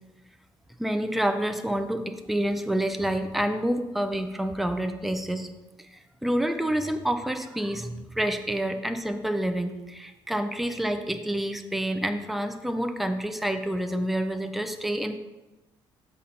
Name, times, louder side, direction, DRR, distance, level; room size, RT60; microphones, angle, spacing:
voice 1, 0.8-5.5 5.8-15.2, right 1 dB, ahead, 6 dB, 0.5 m, -28 dB
7.2 x 4.3 x 5.6 m, 1.1 s
cardioid pair, 140°, 9 cm